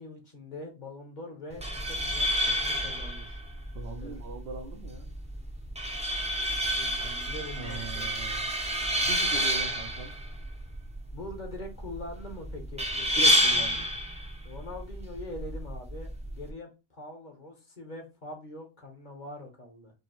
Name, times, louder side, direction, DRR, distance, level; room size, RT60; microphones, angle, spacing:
voice 1, 0.0-3.4 4.0-4.2 6.5-8.1 11.1-13.4 14.4-19.9, left 2 dB, 45° left, 1.2 m, -43 dB
sound 1, 1.5-16.5, equal, 5° right, 0.6 m, -30 dB
voice 2, 3.7-5.1 7.6-8.5 9.0-10.1 13.2-13.9, right 4 dB, 70° right, 0.9 m, -40 dB
5.1 x 2.8 x 3.0 m
omnidirectional pair, 1.2 m